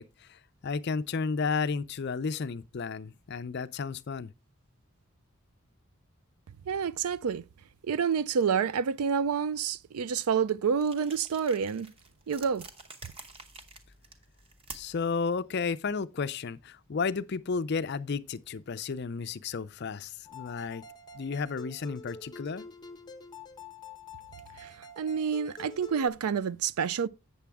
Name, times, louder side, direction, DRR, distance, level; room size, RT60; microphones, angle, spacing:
voice 1, 0.0-4.3 14.7-20.8 21.1-22.7, left 5 dB, 50° left, 0.4 m, -33 dB
voice 2, 6.6-7.4 7.8-11.9 12.3-12.7 24.6-27.1, right 6 dB, 85° right, 0.4 m, -28 dB
sound 1, 10.8-15.1, right 3 dB, 25° right, 0.9 m, -48 dB
sound 2, 20.2-26.1, left 2 dB, 20° left, 0.9 m, -47 dB
8.4 x 7.1 x 3.4 m
head